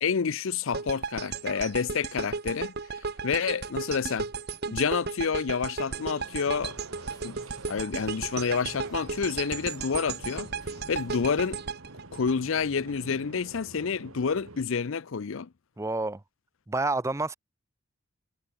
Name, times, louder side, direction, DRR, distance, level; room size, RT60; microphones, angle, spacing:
voice 1, 0.0-2.7 3.2-4.3 4.7-6.7 7.2-7.4 7.7-10.5 10.9-11.6 12.1-15.5, left 6 dB, 60° left, 0.5 m, -29 dB
sound 1, 0.7-12.9, right 5 dB, 45° right, 0.9 m, -35 dB
sound 2, 5.9-14.6, right 2 dB, 70° right, 2.2 m, -48 dB
sound 3, 6.5-11.6, left 1 dB, 15° left, 2.0 m, -53 dB
voice 2, 15.8-16.2 16.7-17.4, right 2 dB, 15° right, 0.5 m, -28 dB
head